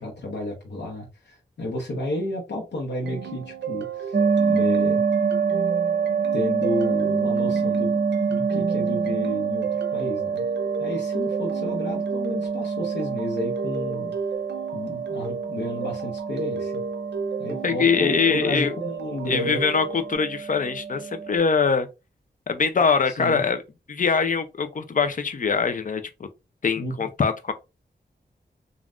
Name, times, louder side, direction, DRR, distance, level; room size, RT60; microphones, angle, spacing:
voice 1, 0.0-4.2 4.5-5.0 6.3-7.9 8.3-10.4 10.8-14.1 14.7-16.8 17.4-19.6 23.1-23.4 26.7-27.1, left 1 dB, 80° left, 0.9 m, -31 dB
sound 1, 3.0-20.2, right 4 dB, 90° right, 0.5 m, -34 dB
sound 2, 4.1-21.4, right 5 dB, 45° right, 0.7 m, -26 dB
voice 2, 17.6-18.7 19.3-21.9 22.5-23.6 23.9-26.3 26.6-27.5, left 5 dB, 50° left, 0.6 m, -23 dB
3.3 x 2.4 x 2.5 m
cardioid pair, 60°, 18 cm